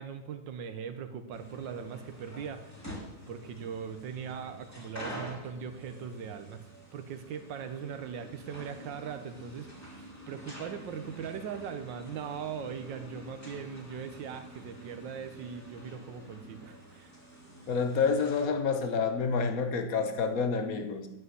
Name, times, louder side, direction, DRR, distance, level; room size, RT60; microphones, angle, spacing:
voice 1, 0.0-2.7 3.3-6.6 6.9-17.1, right 7 dB, 70° right, 9 dB, 1.5 m, -40 dB
sound 1, 1.3-18.4, equal, 10° left, 2.2 m, -47 dB
voice 2, 17.7-21.1, left 5 dB, 50° left, 6 dB, 1.4 m, -28 dB
9.8 x 5.5 x 7.8 m, 0.90 s
omnidirectional pair, 2.2 m